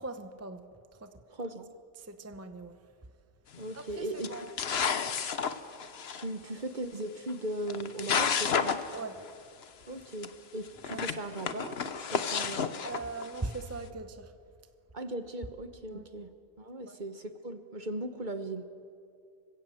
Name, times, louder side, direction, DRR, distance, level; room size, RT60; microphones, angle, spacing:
voice 1, 0.0-1.2 2.0-2.8 3.7-4.5 8.9-9.3 10.9-11.1 12.8-14.3 15.9-16.0 16.8-17.0, right 3 dB, 15° right, 9 dB, 0.8 m, -41 dB
voice 2, 1.3-1.7 3.6-4.3 6.2-8.8 9.9-12.7 14.9-16.3 16.6-18.7, right 1 dB, 45° right, 9 dB, 1.3 m, -38 dB
sound 1, 3.5-3.8 4.2-6.2 7.3-7.4 7.7-9.0 9.3-9.4 9.6-9.7 10.2-10.3 10.8-13.5, left 6 dB, 60° left, 1.2 m, -31 dB
25.5 x 16.5 x 7.8 m, 2.4 s
omnidirectional pair, 1.2 m